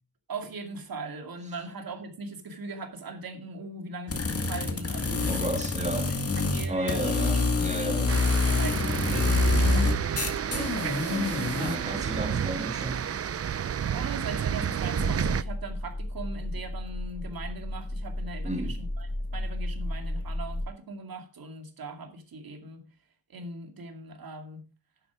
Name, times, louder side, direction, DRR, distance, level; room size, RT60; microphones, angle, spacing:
voice 1, 0.3-6.2 6.5-8.0 8.4-9.1 9.7-10.1 11.4-11.7 13.9-22.8 23.3-24.6, right 3 dB, 75° right, 2.4 m, -40 dB
sound 1, 4.1-11.8, left 3 dB, 40° left, 2.0 m, -26 dB
voice 2, 5.2-6.2 6.7-8.2 10.4-10.8 11.1-13.1 18.4-18.9, right 2 dB, 20° right, 2.5 m, -34 dB
sound 2, 8.1-15.4, right 8 dB, 40° right, 0.5 m, -30 dB
sound 3, 15.0-20.7, left 1 dB, 15° left, 1.5 m, -34 dB
11.0 x 8.7 x 4.9 m
cardioid pair, 75°, 36 cm